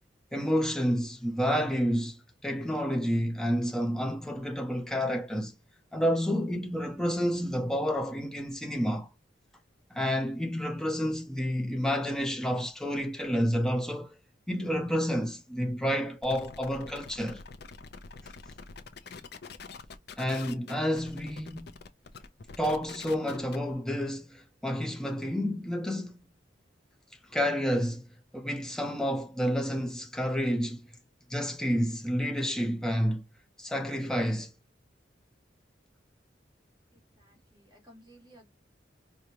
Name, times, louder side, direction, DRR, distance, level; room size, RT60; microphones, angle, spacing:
voice 1, 0.3-5.5 5.9-9.1 9.9-14.2 14.5-17.4 20.2-21.7 22.6-26.2 27.3-28.1 28.3-30.9 31.3-33.2 33.6-34.5, equal, 5° left, 1.0 m, -29 dB
sound 1, 16.2-23.7, left 4 dB, 65° left, 0.6 m, -46 dB
voice 2, 36.9-38.5, right 1 dB, 25° right, 1.9 m, -57 dB
4.9 x 2.3 x 2.8 m
head